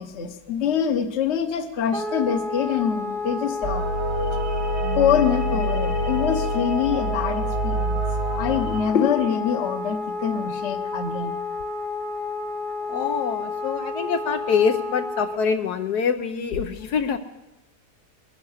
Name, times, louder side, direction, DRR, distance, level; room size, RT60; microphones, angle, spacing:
voice 1, 0.0-3.8 4.9-8.1 8.4-11.4, left 8 dB, 45° left, 9 dB, 1.2 m, -25 dB
Wind instrument woodwind instrument, 1.9-15.4, left 4 dB, 35° right, 1.0 m, -31 dB
sound 1, 3.6-8.8, right 2 dB, 65° right, 2.5 m, -26 dB
voice 2, 12.9-17.2, left 6 dB, 70° left, 7 dB, 1.3 m, -24 dB
20.5 x 10.5 x 6.5 m, 0.96 s
omnidirectional pair, 1.8 m